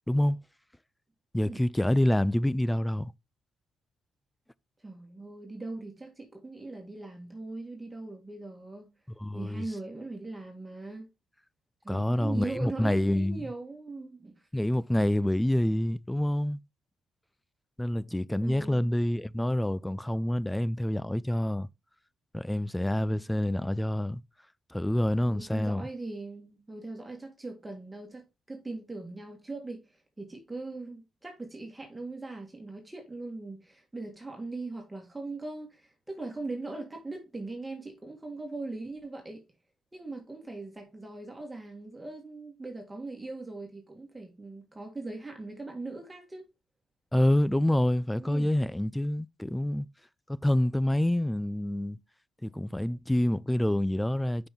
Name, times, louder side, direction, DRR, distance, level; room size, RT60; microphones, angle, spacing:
voice 1, 0.1-0.4 1.3-3.1 9.2-9.6 11.9-13.5 14.5-16.6 17.8-21.7 22.3-24.2 24.7-25.9 47.1-49.9 50.3-52.0 52.4-54.5, left 1 dB, 5° left, 0.3 m, -27 dB
voice 2, 4.8-8.9 9.3-11.1 11.8-14.5 18.4-18.9 23.1-23.2 25.3-39.4 39.9-46.5 48.2-48.6, right 2 dB, 15° right, 1.7 m, -40 dB
6.0 x 5.3 x 3.6 m
cardioid pair, 90°, 0 cm